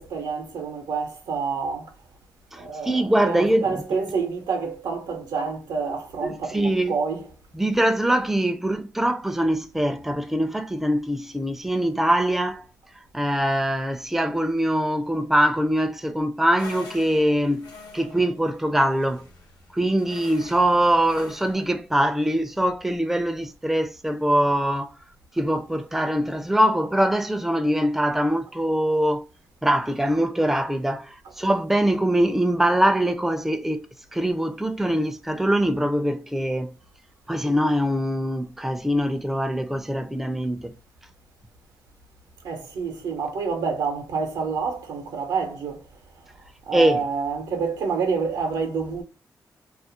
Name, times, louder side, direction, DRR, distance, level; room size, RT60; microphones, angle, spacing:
voice 1, 0.0-1.9 2.6-7.2 42.4-45.8 46.7-49.0, right 5 dB, 85° right, 0.6 m, -28 dB
voice 2, 2.5-3.8 6.2-6.9 7.5-12.7 13.0-19.3 19.7-25.0 25.3-29.2 29.6-36.7 37.3-40.7 46.7-47.0, right 1 dB, 5° right, 0.4 m, -23 dB
sound 1, 16.6-21.7, left 4 dB, 75° left, 0.8 m, -45 dB
2.4 x 2.0 x 2.7 m
supercardioid pair, 50°, 7 cm